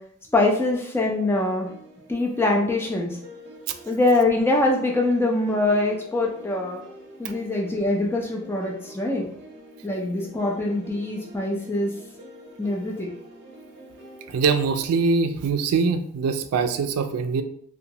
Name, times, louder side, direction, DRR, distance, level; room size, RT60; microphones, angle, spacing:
voice 1, 0.3-1.7 2.1-3.2 3.9-6.8 7.2-9.3 9.8-12.0 12.6-13.1, left 2 dB, 10° left, 0 dB, 0.3 m, -23 dB
sound 1, 1.0-15.1, equal, 50° right, 0.6 m, -46 dB
voice 2, 14.3-17.4, right 4 dB, 85° right, 8 dB, 0.3 m, -23 dB
2.8 x 2.2 x 2.8 m, 0.65 s
head